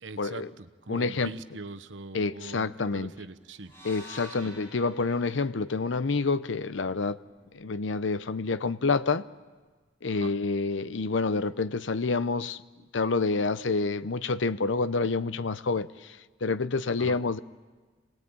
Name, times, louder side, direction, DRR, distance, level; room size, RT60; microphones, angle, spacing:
voice 1, 0.0-3.7 4.4-4.5 10.1-10.3 17.0-17.2, right 3 dB, 85° right, 12 dB, 1.1 m, -42 dB
voice 2, 0.9-1.3 2.1-3.1 3.8-7.2 7.5-9.2 10.0-12.6 12.9-16.1 16.4-17.4, left 4 dB, 90° left, 15 dB, 0.7 m, -28 dB
sound 1, 3.6-7.8, equal, 15° left, 6.7 m, -50 dB
27.5 x 19.0 x 8.8 m, 1.4 s
head